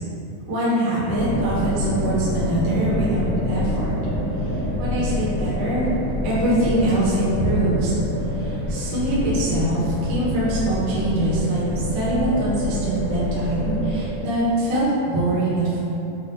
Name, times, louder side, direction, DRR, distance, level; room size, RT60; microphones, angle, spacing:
voice 1, 0.5-3.9 4.8-5.9 6.2-7.9 8.3-15.8, right 1 dB, 55° right, -10 dB, 1.8 m, -23 dB
Space Ambience, 1.1-14.1, left 1 dB, 75° left, 0.5 m, -26 dB
7.2 x 2.5 x 2.6 m, 2.9 s
omnidirectional pair, 3.8 m